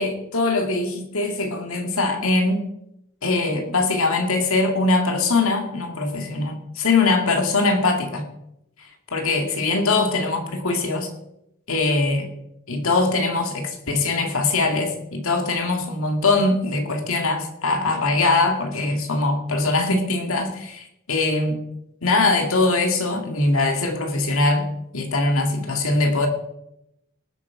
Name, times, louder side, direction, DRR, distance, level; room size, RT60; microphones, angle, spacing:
voice 1, 0.0-2.7 3.2-8.3 9.1-11.1 11.7-12.3 12.7-21.6 22.0-24.7 24.9-26.3, left 3 dB, 70° left, 4 dB, 2.1 m, -22 dB
19.5 x 8.4 x 4.8 m, 0.83 s
head